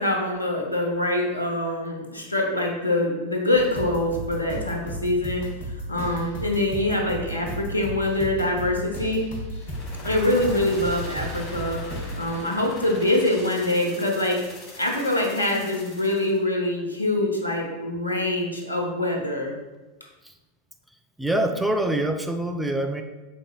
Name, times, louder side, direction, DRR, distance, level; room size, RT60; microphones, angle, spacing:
voice 1, 0.0-9.3 10.0-14.4 14.8-19.5, left 1 dB, 85° left, 0 dB, 0.8 m, -24 dB
sound 1, 3.5-12.2, equal, 60° left, 1.4 m, -34 dB
sound 2, 9.5-16.4, left 1 dB, 30° left, 1.5 m, -41 dB
voice 2, 21.2-23.0, right 1 dB, 5° right, 5 dB, 0.3 m, -25 dB
5.2 x 3.8 x 2.3 m, 1.1 s
figure-of-eight pair, 90°, 0 cm